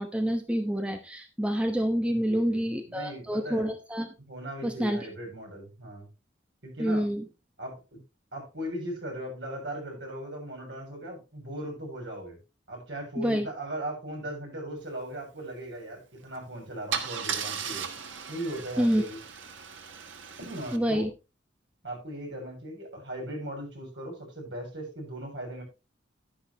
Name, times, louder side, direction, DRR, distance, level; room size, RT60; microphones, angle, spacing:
voice 1, 0.0-4.1 4.6-5.0 6.8-7.2 13.2-13.5 18.8-19.0 20.7-21.1, equal, 5° right, 5 dB, 0.9 m, -27 dB
voice 2, 2.1-3.7 4.2-6.1 6.6-7.1 7.6-8.0 8.3-12.4 12.7-17.9 18.3-19.2 20.4-21.1 21.8-25.6, right 1 dB, 65° right, 1 dB, 6.8 m, -38 dB
Car / Engine starting / Idling, 16.2-16.4 16.9-20.8, right 7 dB, 85° right, 1.5 m, -36 dB
11.0 x 10.0 x 3.1 m, 0.28 s
head